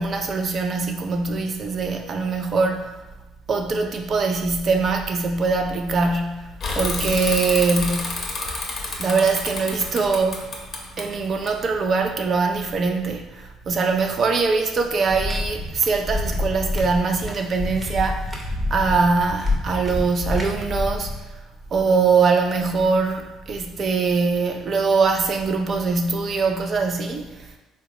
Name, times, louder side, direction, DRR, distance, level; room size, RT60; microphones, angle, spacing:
voice 1, 0.0-3.0 3.5-8.2 9.0-10.5 11.0-21.1 21.7-27.5, right 4 dB, 40° right, 4 dB, 0.4 m, -22 dB
Bicycle / Mechanisms, 6.6-12.1, left 3 dB, 40° left, 0.6 m, -30 dB
sound 1, 15.1-21.2, left 2 dB, 10° right, 0.7 m, -28 dB
3.6 x 2.2 x 2.9 m, 1.1 s
cardioid pair, 110°, 0 cm